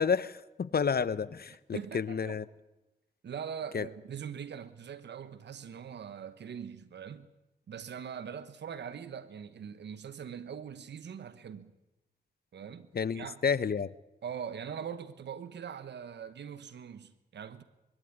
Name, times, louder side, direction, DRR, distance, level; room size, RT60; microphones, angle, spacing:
voice 1, 0.0-2.4 3.7-3.8 12.9-13.9, left 6 dB, 60° left, 0.9 m, -30 dB
voice 2, 1.5-2.4 3.2-7.3 7.7-11.7 12.5-12.9 13.1-13.4 14.2-17.6, right 7 dB, 90° right, 1.2 m, -42 dB
22.0 x 15.5 x 9.8 m
cardioid pair, 40°, 18 cm